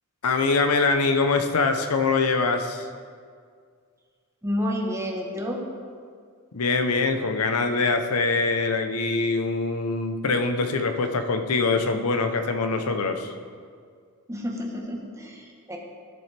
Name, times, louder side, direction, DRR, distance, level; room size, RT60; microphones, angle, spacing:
voice 1, 0.2-2.9 6.5-13.3, left 3 dB, 80° left, 7 dB, 0.7 m, -23 dB
voice 2, 4.4-5.6 14.3-15.8, equal, 15° right, 0 dB, 1.1 m, -30 dB
11.5 x 7.3 x 3.3 m, 2.1 s
head